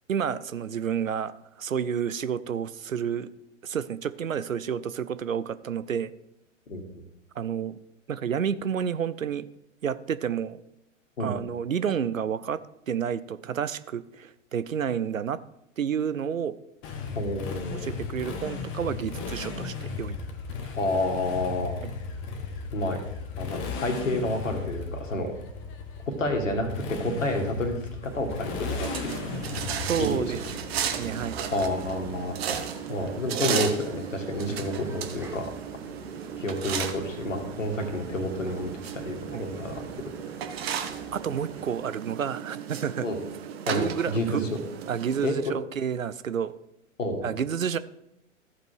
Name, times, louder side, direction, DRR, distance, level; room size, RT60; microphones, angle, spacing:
voice 1, 0.1-3.3 3.6-6.1 7.4-7.8 8.1-9.5 9.8-10.6 11.2-15.4 15.8-16.6 17.7-20.2 29.8-30.4 31.0-31.4 34.5-34.6 39.3-39.4 41.1-43.1 43.7-44.4 44.9-46.5 47.2-47.8, right 8 dB, 80° right, 15 dB, 0.6 m, -30 dB
Motorcycle, 16.8-32.6, left 4 dB, 30° left, 1.2 m, -36 dB
voice 2, 17.1-17.9 20.8-21.7 22.7-23.0 23.4-25.3 26.2-27.8 28.0-29.1 30.0-30.4 31.5-32.6 32.9-35.5 36.4-39.9 43.0-43.2 43.7-44.4 45.2-45.6 47.0-47.3, left 1 dB, 70° left, 4 dB, 2.1 m, -29 dB
sound 1, 28.0-41.7, right 2 dB, 5° right, 1.2 m, -46 dB
sound 2, 28.6-45.3, right 8 dB, 50° right, 1.2 m, -35 dB
14.0 x 5.1 x 4.6 m, 0.83 s
figure-of-eight pair, 105°, 40 cm